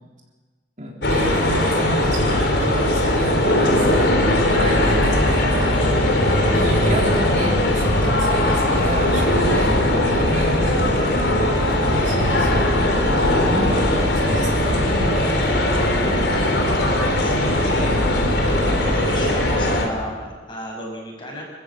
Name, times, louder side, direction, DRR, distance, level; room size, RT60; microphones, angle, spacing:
voice 1, 0.8-4.1 4.5-6.0 6.5-9.8 10.1-11.0 11.7-12.5 13.0-15.6, right 1 dB, 40° right, -2 dB, 3.7 m, -30 dB
sound 1, 1.0-19.9, left 1 dB, 70° left, 3.8 m, -19 dB
voice 2, 17.2-18.3 18.6-21.4, left 1 dB, 25° left, -1 dB, 6.4 m, -32 dB
27.0 x 15.0 x 7.6 m, 1.3 s
head